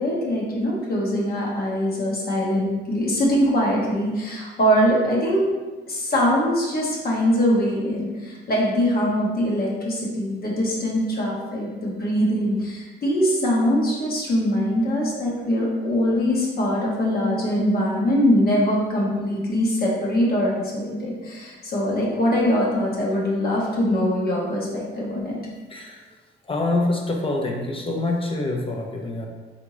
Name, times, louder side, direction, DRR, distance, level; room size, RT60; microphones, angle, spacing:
voice 1, 0.0-5.5 5.9-25.4, equal, 50° left, -4 dB, 1.0 m, -22 dB
voice 2, 25.7-26.0 26.5-29.3, left 2 dB, 30° left, 0 dB, 0.5 m, -25 dB
3.5 x 2.6 x 3.0 m, 1.3 s
cardioid pair, 90°, 20 cm